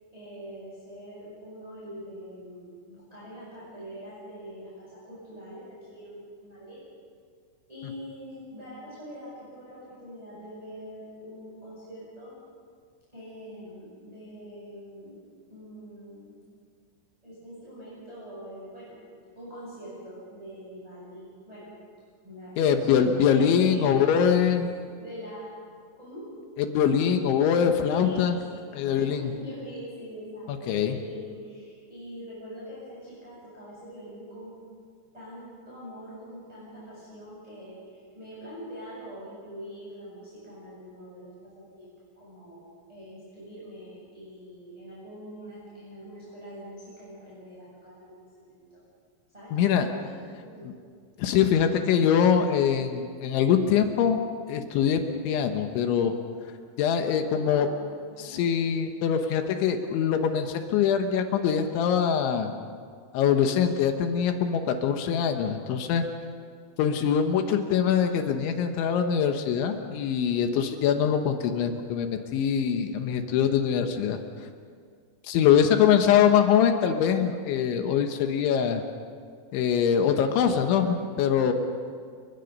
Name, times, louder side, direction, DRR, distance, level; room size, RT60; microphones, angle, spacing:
voice 1, 0.1-6.8 7.7-12.3 13.1-15.2 15.5-16.4 17.2-19.0 19.4-21.7 22.2-24.4 24.8-25.5 26.0-26.2 27.8-34.5 35.1-48.8 49.3-50.7 57.2-57.8 58.1-58.5 75.5-75.9, equal, 5° right, -9 dB, 7.8 m, -43 dB
voice 2, 22.6-24.6 26.6-28.4 28.7-29.3 30.7-30.9 49.5-49.9 51.2-56.2 56.8-57.7 58.2-62.5 63.1-66.1 66.8-74.2 75.2-78.8 79.5-81.5, left 8 dB, 80° left, 5 dB, 3.6 m, -23 dB
30.0 x 23.5 x 5.5 m, 2.1 s
omnidirectional pair, 5.3 m